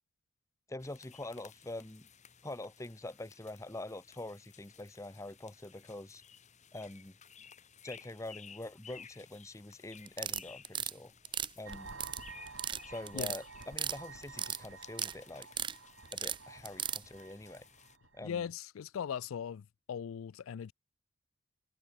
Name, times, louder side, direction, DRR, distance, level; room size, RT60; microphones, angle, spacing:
voice 1, 0.7-2.1 2.4-6.2 6.7-7.2 7.8-11.1 11.6-11.9 12.9-15.5 16.1-17.7 18.1-18.5, left 2 dB, 15° left, 1.0 m, -45 dB
sound 1, 0.8-18.0, left 7 dB, 35° left, 2.0 m, -57 dB
sound 2, 10.1-10.9 11.2-12.2 12.5-12.8 13.1-14.0 14.2-15.1 15.4-15.7 16.1-17.0, right 9 dB, 25° right, 0.5 m, -36 dB
sound 3, 11.6-18.4, right 4 dB, 65° right, 4.5 m, -51 dB
voice 2, 18.2-20.7, left 8 dB, 75° left, 0.4 m, -39 dB
head